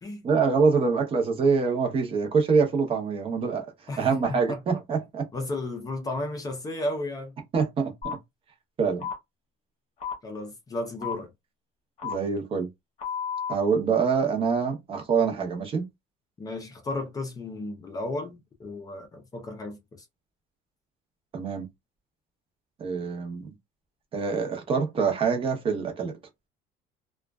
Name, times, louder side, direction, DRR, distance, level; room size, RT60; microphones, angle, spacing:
voice 1, 0.2-3.7 4.0-5.3 7.5-8.2 8.8-9.1 12.0-12.7 13.5-15.9 21.3-21.7 22.8-23.5 24.1-26.1, right 5 dB, 30° right, 0.7 m, -25 dB
voice 2, 3.9-4.6 5.3-7.3 10.2-11.3 16.4-20.0, left 2 dB, 20° left, 0.5 m, -34 dB
sound 1, 8.0-8.1 9.0-9.2 10.0-10.1 11.0-11.1 12.0-12.1 13.0-13.5, left 7 dB, 40° left, 0.8 m, -31 dB
2.4 x 2.2 x 2.2 m
cardioid pair, 150°, 17 cm